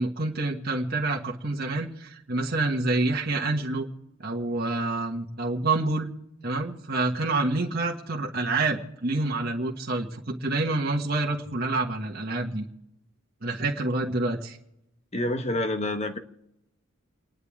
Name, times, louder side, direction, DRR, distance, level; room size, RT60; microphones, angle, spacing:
voice 1, 0.0-3.9 4.2-6.1 6.4-12.7 13.4-14.6, right 2 dB, 50° right, -1 dB, 1.5 m, -27 dB
voice 2, 15.1-16.2, left 1 dB, 30° left, 7 dB, 1.1 m, -27 dB
29.5 x 11.0 x 3.6 m, 0.87 s
head